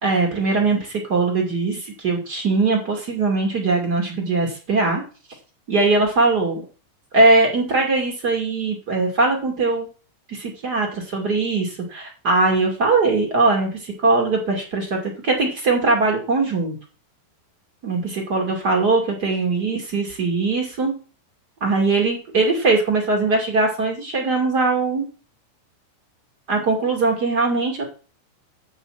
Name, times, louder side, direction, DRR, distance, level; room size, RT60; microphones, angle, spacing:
voice 1, 0.0-5.0 5.7-6.6 7.1-9.9 10.3-16.7 17.8-20.9 21.6-25.1 26.5-27.8, right 3 dB, 35° right, 1 dB, 1.8 m, -21 dB
10.5 x 4.1 x 7.6 m, 0.37 s
omnidirectional pair, 5.4 m